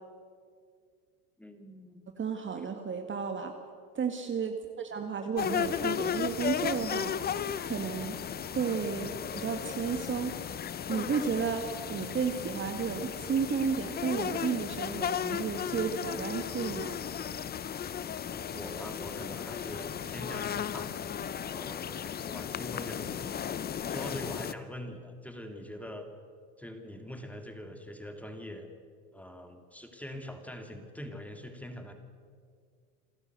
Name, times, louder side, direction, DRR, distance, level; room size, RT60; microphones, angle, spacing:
voice 1, 1.4-2.0 18.5-23.5 23.9-26.1 26.6-28.7 29.1-31.9, equal, 5° left, 6 dB, 2.8 m, -43 dB
voice 2, 2.2-3.5 3.9-7.1 7.6-8.2 8.5-10.3 10.9-11.6 11.9-16.9, right 6 dB, 25° right, 5 dB, 1.8 m, -32 dB
sound 1, 5.4-24.5, left 8 dB, 20° left, 0.7 m, -35 dB
28.0 x 13.0 x 8.2 m, 2.1 s
hypercardioid pair, 95°, 46 cm